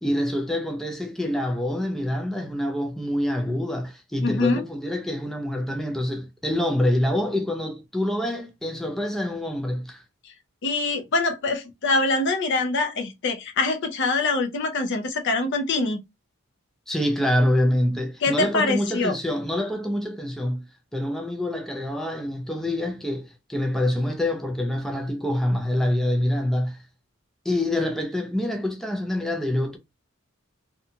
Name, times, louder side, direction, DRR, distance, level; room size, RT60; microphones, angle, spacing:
voice 1, 0.0-10.0 16.9-20.6 20.9-26.8 27.4-29.8, left 1 dB, ahead, 0.4 m, -26 dB
voice 2, 4.2-4.6 10.2-10.3 10.6-16.0 18.2-19.2, left 3 dB, 60° left, 0.6 m, -24 dB
2.6 x 2.3 x 2.6 m
head